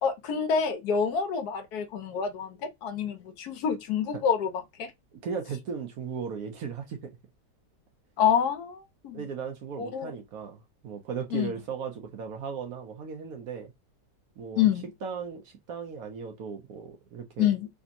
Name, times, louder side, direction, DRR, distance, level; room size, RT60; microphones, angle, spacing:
voice 1, 0.0-4.9 8.2-9.2 9.8-10.1 11.3-11.5 14.6-14.9 17.4-17.7, left 7 dB, 70° left, 1.1 m, -27 dB
voice 2, 5.2-7.2 9.1-13.7 14.4-14.7 15.0-17.5, right 6 dB, 65° right, 1.0 m, -37 dB
3.3 x 2.8 x 2.6 m
omnidirectional pair, 1.8 m